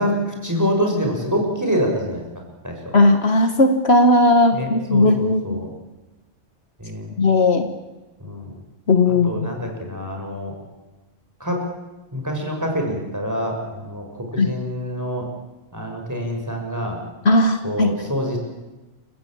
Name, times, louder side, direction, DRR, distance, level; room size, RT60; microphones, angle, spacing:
voice 1, 0.0-2.2 2.6-2.9 4.5-5.7 6.8-7.1 8.2-8.5 9.1-10.5 11.4-11.6 12.1-15.3 15.7-17.0 17.6-18.4, equal, 15° right, 1 dB, 5.9 m, -26 dB
voice 2, 2.9-5.6 7.2-7.7 8.9-9.5 14.4-14.5 17.3-17.9, left 2 dB, 55° left, 7 dB, 1.8 m, -16 dB
29.0 x 16.0 x 8.8 m, 1.1 s
omnidirectional pair, 1.3 m